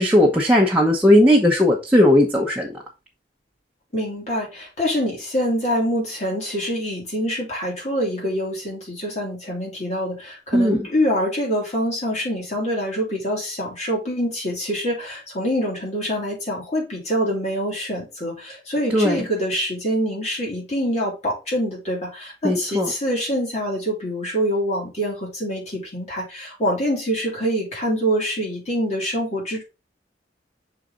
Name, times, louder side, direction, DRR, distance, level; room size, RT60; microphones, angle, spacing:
voice 1, 0.0-2.7 10.5-10.8 18.9-19.2 22.4-22.9, left 1 dB, 10° right, -3 dB, 0.9 m, -17 dB
voice 2, 3.9-29.6, equal, 40° left, -3 dB, 2.9 m, -25 dB
6.6 x 4.1 x 3.8 m, 0.28 s
head